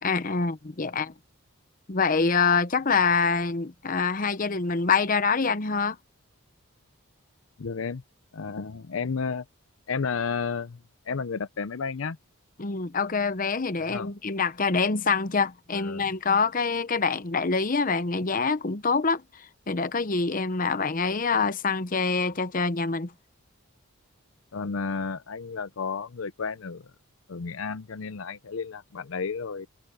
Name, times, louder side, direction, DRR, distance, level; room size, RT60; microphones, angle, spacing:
voice 1, 0.0-1.1 1.9-6.0 12.6-23.1, left 4 dB, 40° left, 0.8 m, -25 dB
voice 2, 7.6-8.0 8.3-9.4 9.9-10.8 11.1-12.2 13.9-14.1 15.7-16.1 24.5-26.8 27.3-29.7, left 5 dB, 70° left, 0.6 m, -32 dB
head